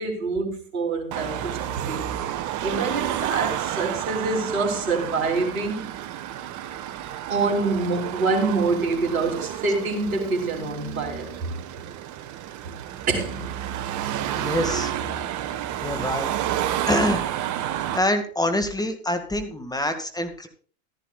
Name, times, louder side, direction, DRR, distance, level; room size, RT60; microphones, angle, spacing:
voice 1, 0.0-2.3 2.6-5.8 7.3-11.3 13.1-13.5, right 3 dB, 85° right, 3.4 m, -26 dB
Car passing by / Traffic noise roadway noise / Engine, 1.1-18.0, right 11 dB, 45° right, 1.5 m, -30 dB
voice 2, 14.3-14.9 15.8-16.3 16.9-17.2 17.9-20.5, left 1 dB, 10° left, 2.1 m, -25 dB
15.0 x 13.5 x 2.5 m
hypercardioid pair, 95°, 41 cm